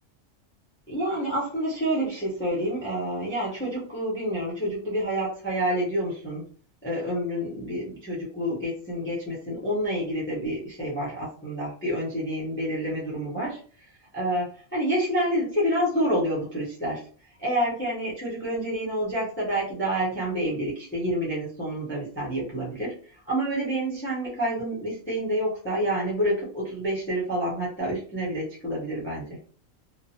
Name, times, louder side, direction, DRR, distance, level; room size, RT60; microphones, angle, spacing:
voice 1, 0.9-6.4 6.8-13.6 14.1-17.0 17.4-22.9 23.3-29.3, equal, 10° left, -6 dB, 0.7 m, -28 dB
2.9 x 2.2 x 2.7 m, 0.43 s
omnidirectional pair, 1.4 m